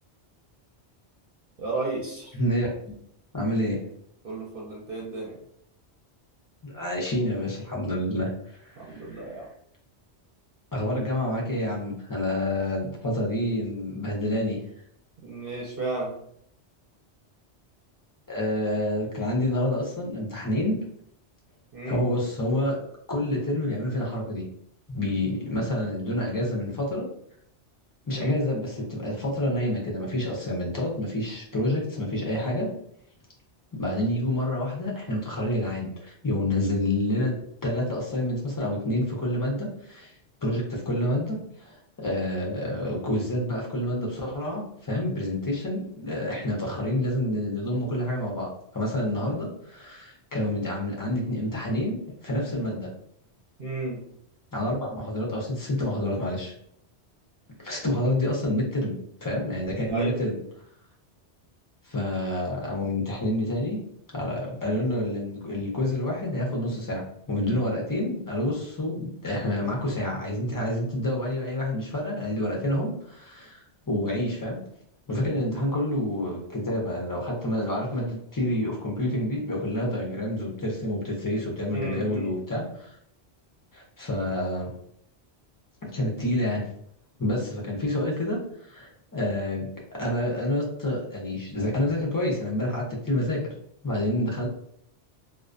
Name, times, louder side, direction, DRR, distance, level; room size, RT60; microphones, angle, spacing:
voice 1, 1.6-2.3 4.2-5.4 8.8-9.5 15.2-16.1 21.7-22.0 28.1-28.3 53.6-54.0 59.9-60.2 81.7-82.3, right 2 dB, 60° right, -4 dB, 0.8 m, -33 dB
voice 2, 2.3-2.7 3.3-3.8 6.6-9.2 10.7-14.6 18.3-20.7 21.9-22.8 23.1-24.4 24.9-27.1 28.1-32.7 33.7-37.3 37.6-40.1 40.4-52.0 52.2-52.9 54.5-56.5 57.6-59.0 59.2-60.4 61.8-63.8 64.1-74.6 75.1-83.0 83.7-84.7 85.8-86.6 87.2-89.7 89.9-93.4 93.8-94.5, left 1 dB, 30° left, -2 dB, 0.4 m, -28 dB
2.4 x 2.1 x 2.4 m, 0.69 s
omnidirectional pair, 1.2 m